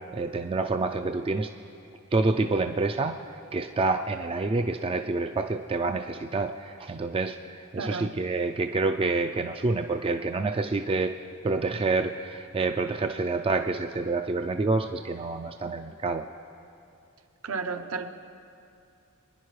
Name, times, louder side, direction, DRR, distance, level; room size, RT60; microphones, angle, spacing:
voice 1, 0.1-1.5 2.1-3.2 3.5-11.1 11.4-16.2, right 3 dB, 25° right, 6 dB, 0.3 m, -27 dB
voice 2, 7.8-8.1 17.4-18.1, right 4 dB, 70° right, 7 dB, 0.8 m, -32 dB
25.5 x 10.0 x 3.2 m, 2.6 s
head